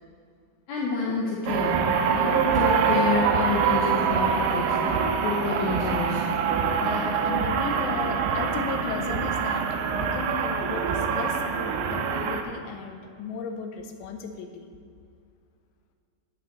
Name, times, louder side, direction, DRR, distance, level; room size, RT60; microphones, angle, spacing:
voice 1, 0.7-1.9 2.1-4.9 5.2-6.2, left 4 dB, 70° left, -5 dB, 2.7 m, -28 dB
sound 1, 1.5-12.4, right 6 dB, 85° right, 2.8 m, -25 dB
voice 2, 6.8-14.7, left 5 dB, 85° left, 5 dB, 2.9 m, -35 dB
12.0 x 10.0 x 3.1 m, 2.3 s
omnidirectional pair, 4.9 m